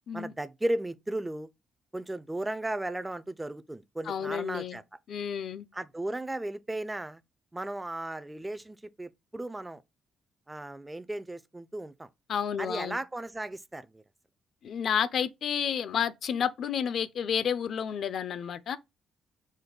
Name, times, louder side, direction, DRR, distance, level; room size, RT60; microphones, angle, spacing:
voice 1, 0.1-1.5 1.9-4.8 5.7-7.2 7.5-9.8 10.5-12.1 12.6-14.0, right 1 dB, 15° right, 0.4 m, -35 dB
voice 2, 4.1-4.8 5.1-5.7 12.3-13.0 14.6-18.8, left 8 dB, 60° left, 0.4 m, -30 dB
5.1 x 2.2 x 3.9 m
cardioid pair, 90°, 0 cm